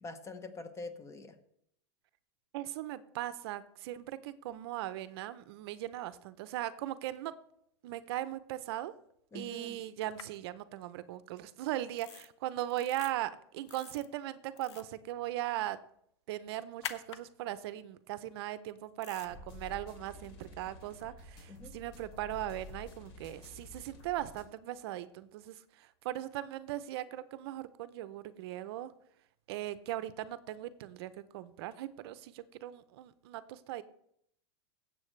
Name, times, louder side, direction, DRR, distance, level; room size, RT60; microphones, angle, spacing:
voice 1, 0.0-1.4 9.3-9.9 21.5-21.7, left 3 dB, 20° left, 10 dB, 1.0 m, -45 dB
voice 2, 2.5-7.3 7.8-8.9 9.3-15.8 16.3-28.9 29.5-33.8, right 14 dB, 65° right, 15 dB, 0.6 m, -39 dB
sound 1, 10.2-10.3 12.0-12.3 12.7-13.1 13.7-14.1 14.5-14.9 16.8-17.2 19.0-19.3, left 9 dB, 85° left, 0.8 m, -44 dB
sound 2, 19.2-24.4, left 2 dB, 65° left, 3.0 m, -50 dB
16.0 x 7.7 x 3.2 m, 0.72 s
supercardioid pair, 125°, 14 cm